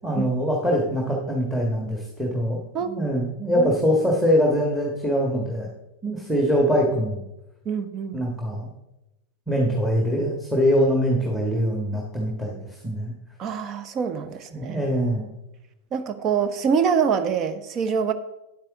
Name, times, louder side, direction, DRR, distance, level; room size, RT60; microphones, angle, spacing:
voice 1, 0.0-5.7 6.0-7.2 8.1-8.7 9.5-13.1 14.5-15.3, equal, 5° right, -1 dB, 1.6 m, -23 dB
voice 2, 2.7-3.1 3.6-3.7 7.6-8.2 13.4-14.8 15.9-18.1, right 6 dB, 30° right, 11 dB, 0.8 m, -25 dB
9.8 x 8.6 x 3.6 m, 0.93 s
figure-of-eight pair, 90°, 0 cm